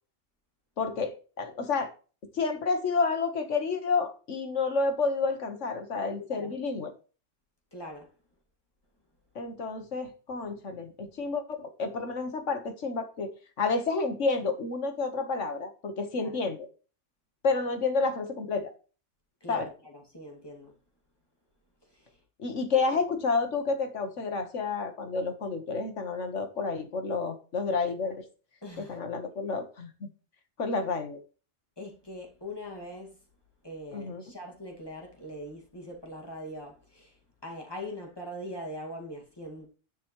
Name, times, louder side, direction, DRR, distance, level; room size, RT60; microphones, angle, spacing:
voice 1, 0.8-1.9 2.3-6.9 9.4-13.3 13.6-16.7 17.4-18.7 19.5-19.7 22.4-28.3 28.8-30.1 30.6-31.2 33.9-34.2, left 4 dB, 75° left, 1.7 m, -30 dB
voice 2, 7.7-8.1 16.2-16.4 19.4-20.7 22.7-22.8 28.6-29.0 31.8-33.1 33.6-37.1 37.4-39.7, left 1 dB, 20° left, 2.2 m, -41 dB
10.0 x 7.5 x 3.1 m
omnidirectional pair, 1.2 m